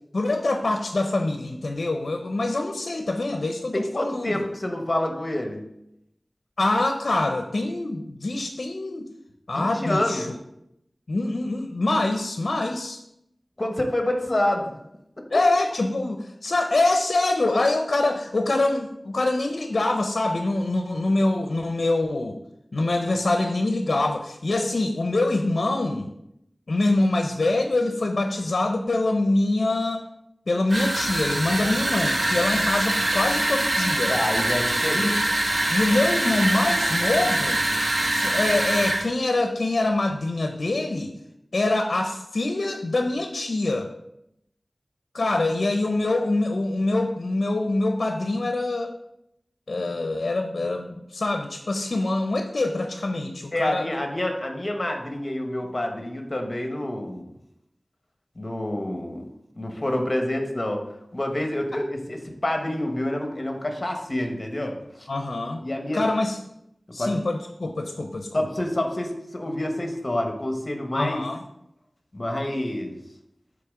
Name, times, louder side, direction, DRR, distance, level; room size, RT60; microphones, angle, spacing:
voice 1, 0.1-4.4 6.6-9.1 9.5-10.4 11.1-13.0 15.3-22.4 22.7-26.1 26.7-30.1 30.5-34.2 34.9-35.2 35.7-37.6 38.1-41.1 41.5-43.9 45.1-48.9 49.7-53.9 65.1-65.6 65.9-66.4 66.9-68.5 70.9-71.4, left 2 dB, 85° left, 5 dB, 0.5 m, -24 dB
voice 2, 3.7-5.6 9.5-10.3 13.6-14.8 34.1-35.1 53.5-57.2 58.4-59.2 59.6-60.8 61.1-65.1 65.6-66.0 67.0-67.2 68.3-71.2 72.1-73.0, left 1 dB, 40° left, 3 dB, 1.1 m, -27 dB
sound 1, 30.7-39.1, right 1 dB, 70° right, 1.0 m, -24 dB
8.6 x 3.9 x 3.7 m, 0.81 s
wide cardioid pair, 60°, 0 cm